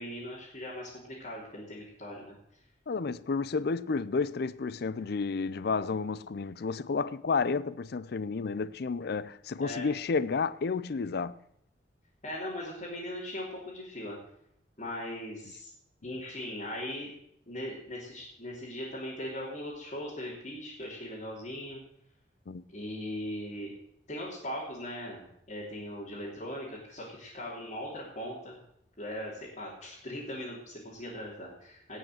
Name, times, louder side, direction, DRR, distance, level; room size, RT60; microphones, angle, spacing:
voice 1, 0.0-2.3 9.6-9.9 12.2-14.2 14.8-15.7 16.0-17.1 17.5-21.8 22.7-23.7 24.1-28.6 29.0-32.0, left 1 dB, 40° left, 3.3 m, -39 dB
voice 2, 2.9-11.3 22.5-22.6, left 4 dB, 60° left, 0.5 m, -31 dB
18.0 x 6.4 x 6.4 m
head